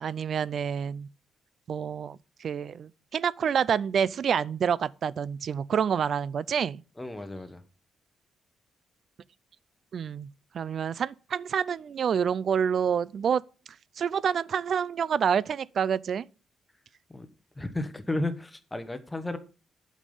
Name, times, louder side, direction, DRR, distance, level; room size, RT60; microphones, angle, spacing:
voice 1, 0.0-1.1 1.7-6.8 9.9-10.3 10.5-13.4 14.0-16.2, right 7 dB, 55° right, 0.3 m, -28 dB
voice 2, 7.0-7.6 17.1-17.3 17.6-19.4, left 2 dB, 10° left, 0.9 m, -33 dB
8.3 x 5.3 x 5.4 m
cardioid pair, 130°, 0 cm